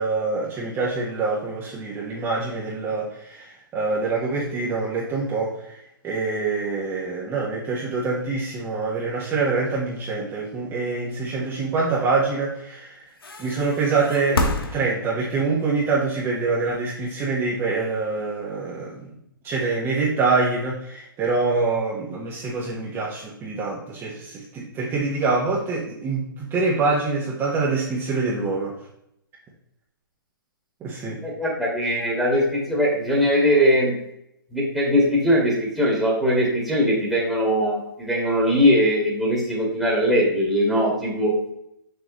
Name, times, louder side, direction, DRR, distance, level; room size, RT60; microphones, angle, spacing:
voice 1, 0.0-5.8 6.0-13.0 13.4-19.1 19.4-28.7 30.8-31.2, right 3 dB, 20° right, -5 dB, 1.4 m, -25 dB
sound 1, 13.2-15.4 16.6-18.0, left 2 dB, 85° left, 1.2 m, -29 dB
voice 2, 31.2-34.0 34.5-41.3, equal, ahead, -5 dB, 2.0 m, -21 dB
6.7 x 6.4 x 3.1 m, 0.77 s
hypercardioid pair, 130°, 12 cm